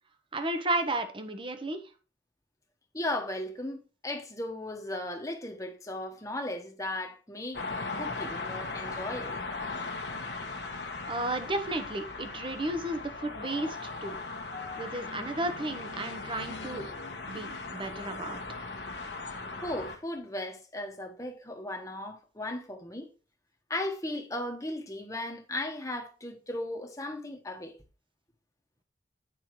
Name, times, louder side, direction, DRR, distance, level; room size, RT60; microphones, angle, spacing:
voice 1, 0.3-1.8 11.1-14.2 14.8-16.9 17.3-18.4, right 2 dB, 30° right, 0.9 m, -33 dB
voice 2, 2.9-7.6 8.0-9.4 14.5-14.9 19.6-23.1 23.7-27.8, left 1 dB, 20° left, 1.2 m, -36 dB
sound 1, 7.5-20.0, left 3 dB, 70° left, 1.3 m, -38 dB
9.3 x 5.5 x 3.1 m
head